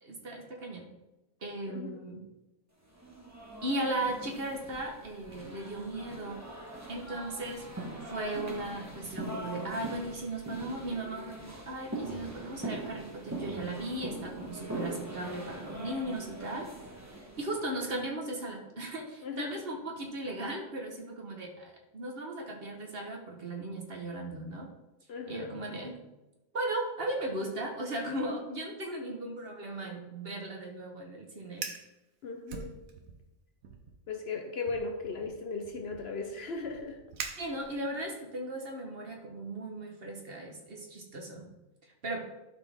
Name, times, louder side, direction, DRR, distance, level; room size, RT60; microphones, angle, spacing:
voice 1, 0.0-0.9 1.4-2.2 3.6-6.4 6.9-7.7 8.1-16.7 17.4-24.7 25.3-26.0 26.5-31.7 37.4-41.5 42.0-42.2, right 1 dB, 45° right, 1 dB, 1.3 m, -37 dB
voice 2, 1.7-2.0 19.2-19.6 25.1-25.6 32.2-32.8 34.1-37.0, left 4 dB, 55° left, 4 dB, 0.9 m, -37 dB
sound 1, 2.9-17.7, right 2 dB, 15° right, 1.1 m, -42 dB
Fire, 31.5-31.9 32.5-33.3 33.6-34.0 34.7-38.0, right 6 dB, 85° right, 1.3 m, -43 dB
12.0 x 4.5 x 3.6 m, 1.0 s
omnidirectional pair, 1.4 m